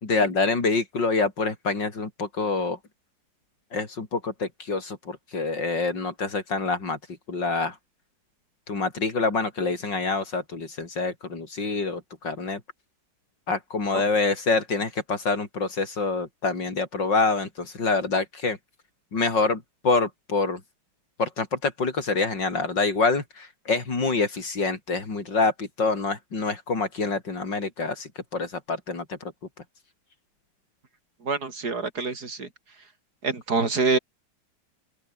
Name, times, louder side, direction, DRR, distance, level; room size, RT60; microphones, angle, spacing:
voice 1, 0.0-2.8 3.7-7.0 7.3-7.8 8.7-12.6 13.5-18.6 19.1-20.6 21.2-29.2, left 3 dB, 70° left, 4.8 m, -26 dB
voice 2, 31.2-32.5 33.2-34.0, right 4 dB, 55° right, 4.3 m, -26 dB
open air
omnidirectional pair, 2.0 m